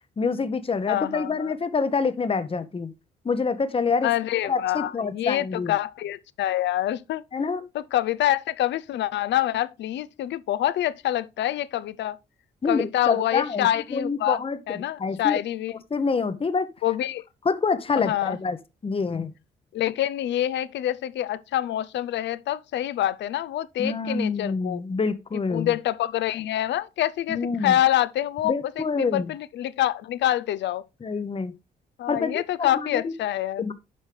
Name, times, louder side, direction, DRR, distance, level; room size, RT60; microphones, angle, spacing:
voice 1, 0.2-2.9 3.2-4.1 4.4-5.7 7.3-7.6 12.6-14.6 15.0-15.4 15.9-16.7 17.4-18.6 18.8-19.3 23.8-25.7 27.3-27.8 28.4-29.3 31.0-31.5 32.1-33.1 33.6-33.7, left 4 dB, 30° left, 0.8 m, -26 dB
voice 2, 0.9-1.5 4.0-7.2 7.7-12.2 12.7-14.4 14.7-15.8 16.8-17.2 18.0-18.4 19.7-24.8 25.5-30.9 32.0-33.7, left 13 dB, 65° left, 0.5 m, -26 dB
8.5 x 5.5 x 3.2 m
supercardioid pair, 55°, 19 cm